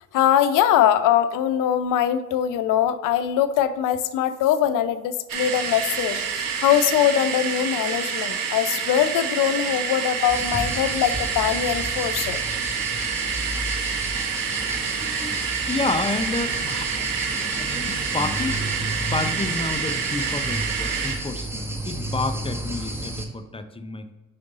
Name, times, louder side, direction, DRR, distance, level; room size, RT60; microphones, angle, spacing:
voice 1, 0.1-12.4, left 10 dB, 65° left, 12 dB, 0.6 m, -22 dB
sound 1, 5.3-21.2, right 6 dB, 70° right, 1.0 m, -28 dB
sound 2, 10.3-23.3, right 1 dB, 5° right, 1.0 m, -32 dB
voice 2, 14.9-16.9 17.6-18.6 19.1-24.1, left 3 dB, 15° left, 8 dB, 0.6 m, -30 dB
5.1 x 4.8 x 3.9 m, 1.2 s
hypercardioid pair, 55°, 34 cm